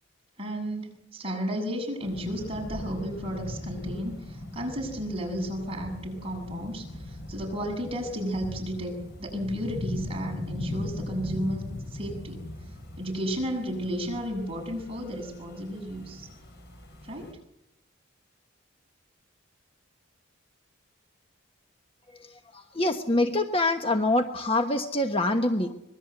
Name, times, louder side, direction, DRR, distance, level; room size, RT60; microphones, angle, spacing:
voice 1, 0.4-11.6 11.9-12.4 13.0-16.3 17.0-17.3, equal, 30° right, 1 dB, 7.5 m, -33 dB
sound 1, 2.0-17.3, left 1 dB, 55° left, 6.3 m, -39 dB
voice 2, 22.5-25.7, left 2 dB, 25° left, 6 dB, 1.2 m, -25 dB
25.0 x 21.5 x 8.1 m, 0.85 s
head